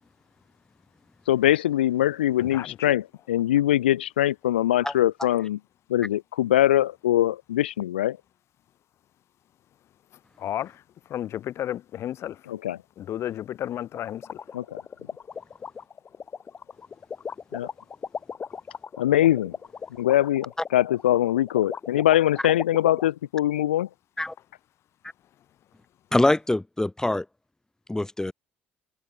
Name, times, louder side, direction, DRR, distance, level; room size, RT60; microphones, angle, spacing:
voice 1, 1.3-5.6 5.9-8.2 12.5-12.8 14.5-14.8 17.5-17.7 19.0-19.5 20.0-23.9, left 13 dB, 80° left, 1.1 m, -22 dB
voice 2, 2.4-2.9 10.4-12.5 13.0-14.4, left 11 dB, 55° left, 2.9 m, -33 dB
sound 1, 13.9-23.1, left 6 dB, 35° left, 2.5 m, -37 dB
voice 3, 26.1-27.3 27.9-28.3, left 1 dB, 10° left, 1.8 m, -24 dB
figure-of-eight pair, 55°, 6 cm